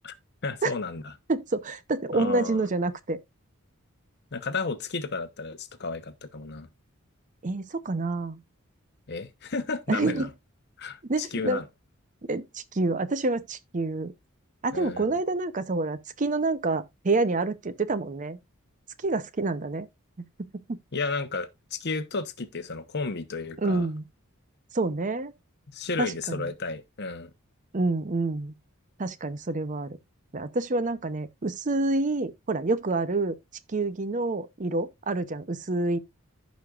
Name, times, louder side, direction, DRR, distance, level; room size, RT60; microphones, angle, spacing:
voice 1, 0.4-1.1 2.1-2.6 4.3-6.7 9.1-10.3 10.8-11.7 14.7-15.0 20.9-23.9 25.7-27.3, left 4 dB, 50° left, 0.9 m, -33 dB
voice 2, 1.3-3.2 7.4-8.4 9.9-10.3 11.1-11.6 12.3-14.1 14.6-18.4 19.0-19.9 20.7-20.8 23.6-24.0 24.7-25.3 26.0-26.4 27.7-28.5 29.0-30.0 30.3-33.4 33.7-36.0, right 2 dB, 35° right, 0.6 m, -27 dB
15.0 x 5.2 x 2.4 m
head